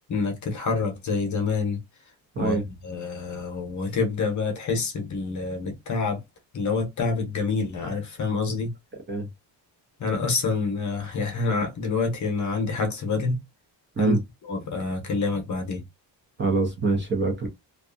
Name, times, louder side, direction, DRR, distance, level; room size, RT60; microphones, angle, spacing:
voice 1, 0.1-1.8 2.4-2.6 2.8-6.2 6.5-8.7 10.0-13.4 14.0-14.1 14.5-15.8, left 4 dB, 45° left, 0.8 m, -27 dB
voice 2, 2.3-2.7 9.1-9.3 14.0-14.2 16.4-17.5, right 3 dB, 25° right, 0.7 m, -24 dB
2.6 x 2.3 x 2.4 m
cardioid pair, 170°, 43 cm